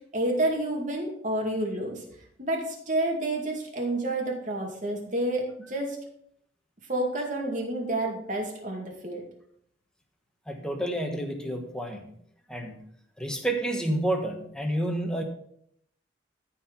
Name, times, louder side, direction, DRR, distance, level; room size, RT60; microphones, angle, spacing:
voice 1, 0.1-2.0 2.4-6.0 6.9-9.2, right 1 dB, 45° right, 0 dB, 2.3 m, -29 dB
voice 2, 10.5-12.0 12.5-12.8 13.2-15.2, right 1 dB, 5° left, 3 dB, 1.3 m, -29 dB
13.5 x 4.6 x 5.5 m, 0.69 s
head